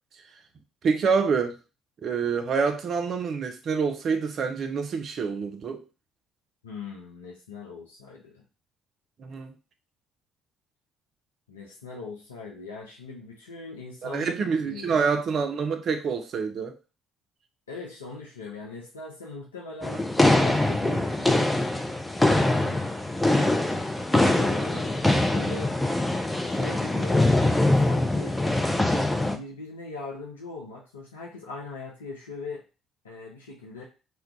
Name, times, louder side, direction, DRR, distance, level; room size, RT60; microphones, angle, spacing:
voice 1, 0.8-1.6 2.0-5.8 9.2-9.5 14.0-16.7 22.5-22.8, right 5 dB, 50° right, 6 dB, 0.5 m, -27 dB
voice 2, 6.6-8.4 11.5-14.3 14.6-15.0 17.7-20.0 20.4-21.5 24.1-25.7 26.5-27.3 27.8-28.4 29.1-32.6 33.0-33.8, left 3 dB, 80° left, -3 dB, 0.4 m, -40 dB
sound 1, 19.8-29.4, left 2 dB, 10° left, 0.4 m, -23 dB
2.2 x 2.2 x 3.7 m, 0.33 s
figure-of-eight pair, 50°, 0 cm